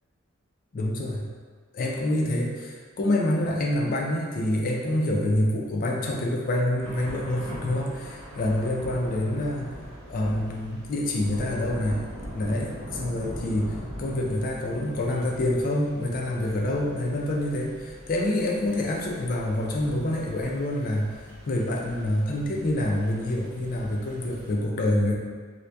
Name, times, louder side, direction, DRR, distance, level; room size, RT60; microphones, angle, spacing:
voice 1, 0.7-1.3 1.7-9.8 10.1-12.0 12.3-21.2 21.4-25.2, left 1 dB, 40° left, -1 dB, 0.3 m, -27 dB
Thunder / Rain, 6.8-24.5, equal, 80° right, 0.7 m, -42 dB
2.7 x 2.2 x 2.2 m, 1.5 s
head